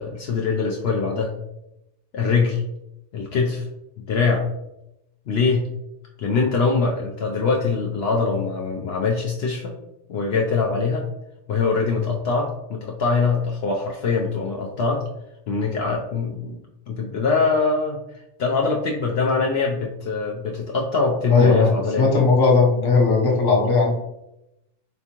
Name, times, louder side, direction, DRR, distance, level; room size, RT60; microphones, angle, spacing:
voice 1, 0.0-1.3 2.1-2.6 3.1-3.7 4.0-4.4 5.3-5.7 6.2-9.7 10.1-11.0 11.5-15.0 15.5-16.5 16.9-18.0 18.4-22.2, left 4 dB, 65° left, -1 dB, 0.7 m, -23 dB
voice 2, 21.3-23.9, left 4 dB, 25° left, -2 dB, 0.6 m, -17 dB
4.2 x 3.5 x 2.9 m, 0.88 s
omnidirectional pair, 1.3 m